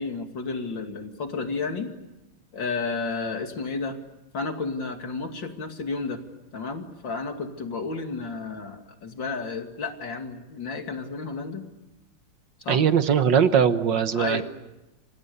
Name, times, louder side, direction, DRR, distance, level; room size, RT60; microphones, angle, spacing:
voice 1, 0.0-1.9 2.5-4.0 4.3-6.2 6.5-11.6 12.6-12.8 14.1-14.4, left 4 dB, 65° left, 5 dB, 3.1 m, -32 dB
voice 2, 12.7-14.4, right 7 dB, 65° right, 10 dB, 1.8 m, -20 dB
29.0 x 26.0 x 6.8 m, 1.0 s
omnidirectional pair, 2.2 m